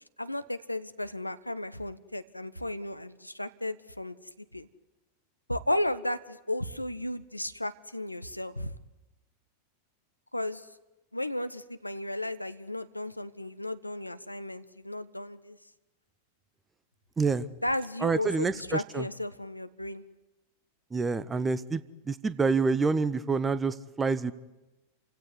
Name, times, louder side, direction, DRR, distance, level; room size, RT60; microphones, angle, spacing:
voice 1, 0.2-4.2 4.5-4.7 5.5-8.7 10.3-10.7 11.1-15.6 17.6-20.0, left 1 dB, 85° left, 12 dB, 1.2 m, -34 dB
voice 2, 18.0-19.0 20.9-21.8 22.1-24.3, right 4 dB, 15° right, 15 dB, 1.2 m, -27 dB
29.5 x 17.0 x 9.9 m, 1.0 s
figure-of-eight pair, 90°, 0 cm